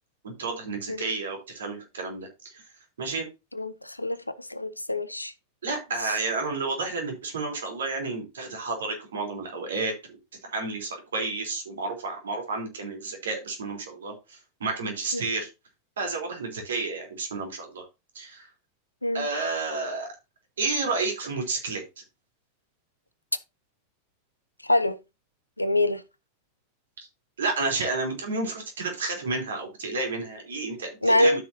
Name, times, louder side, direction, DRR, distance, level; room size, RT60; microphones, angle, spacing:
voice 1, 0.2-2.6 3.0-3.3 5.6-10.2 10.5-15.5 16.0-17.8 18.2-18.5 19.1-20.1 20.6-21.8 27.4-31.4, right 3 dB, 65° right, 3.5 m, -31 dB
voice 2, 3.5-5.3 6.0-6.2 15.1-15.3 19.0-19.3 24.6-25.0 25.6-26.0 31.0-31.4, left 1 dB, 85° left, 0.6 m, -25 dB
13.0 x 6.1 x 2.7 m
figure-of-eight pair, 90°, 0 cm